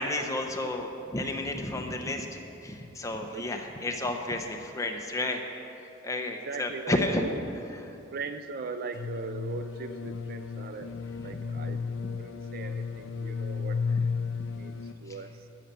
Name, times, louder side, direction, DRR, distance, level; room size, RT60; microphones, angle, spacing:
voice 1, 0.0-5.4 6.0-7.3 7.7-7.9 11.2-11.3, left 2 dB, 15° left, 3 dB, 0.8 m, -32 dB
voice 2, 3.3-3.7 6.5-7.4 8.1-11.8 12.2-13.8 14.5-14.8 15.0-15.3, right 4 dB, 45° right, 10 dB, 0.5 m, -39 dB
sound 1, 8.9-14.9, left 5 dB, 65° left, 0.6 m, -33 dB
14.5 x 6.5 x 6.8 m, 2.8 s
head